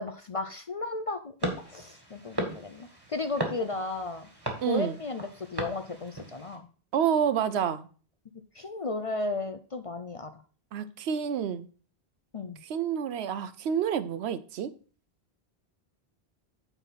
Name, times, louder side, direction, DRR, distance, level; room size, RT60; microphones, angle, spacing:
voice 1, 0.0-4.3 4.7-6.7 8.5-10.4 12.3-12.6, left 3 dB, 40° left, 0.5 m, -34 dB
sound 1, 1.4-6.6, right 1 dB, 20° right, 1.8 m, -37 dB
sound 2, 1.6-1.9 3.6-3.9 5.6-5.8 7.6-7.9, left 2 dB, 85° left, 1.9 m, -50 dB
voice 2, 4.6-5.0 6.9-7.9 10.7-11.7 12.6-14.7, right 8 dB, 80° right, 0.9 m, -28 dB
9.0 x 4.2 x 5.6 m
omnidirectional pair, 1.1 m